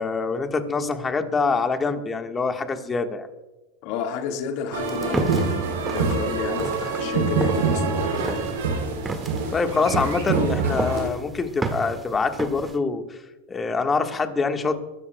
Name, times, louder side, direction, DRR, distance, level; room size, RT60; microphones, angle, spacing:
voice 1, 0.0-3.3 9.5-13.2 13.5-14.8, left 4 dB, 20° left, 6 dB, 1.4 m, -25 dB
voice 2, 3.8-8.5, left 6 dB, 65° left, 3 dB, 1.7 m, -31 dB
sound 1, 4.7-11.1, right 4 dB, 90° right, 2.7 m, -25 dB
sound 2, 4.8-12.8, right 3 dB, 15° right, 1.8 m, -33 dB
23.0 x 12.5 x 2.3 m, 1.1 s
hypercardioid pair, 105°, 0 cm